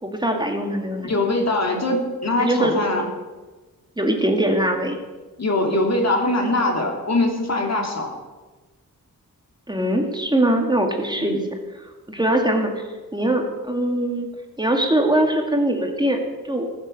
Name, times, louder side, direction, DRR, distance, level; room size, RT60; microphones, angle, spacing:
voice 1, 0.0-1.1 2.4-2.8 4.0-5.0 9.7-11.4 12.1-12.7 13.1-14.3 14.6-16.2 16.5-16.7, right 1 dB, 15° right, 2 dB, 2.0 m, -21 dB
voice 2, 1.0-3.1 5.4-8.2 11.2-11.4, left 2 dB, 50° left, 2 dB, 3.0 m, -22 dB
20.0 x 7.6 x 6.9 m, 1.2 s
wide cardioid pair, 90°, 34 cm